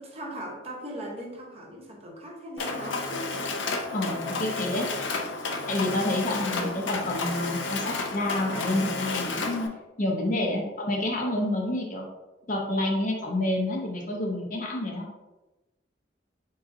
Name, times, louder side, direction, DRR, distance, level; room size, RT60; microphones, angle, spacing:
voice 1, 0.0-3.3 4.2-4.4 6.5-6.8 10.4-10.5, equal, 35° right, -1 dB, 0.7 m, -39 dB
Mechanisms, 2.6-9.7, left 3 dB, 90° left, 0.5 m, -31 dB
voice 2, 3.9-4.9 5.7-9.7 10.0-12.0 12.5-15.1, left 1 dB, 45° left, 1 dB, 0.6 m, -28 dB
4.0 x 3.7 x 2.5 m, 1.1 s
head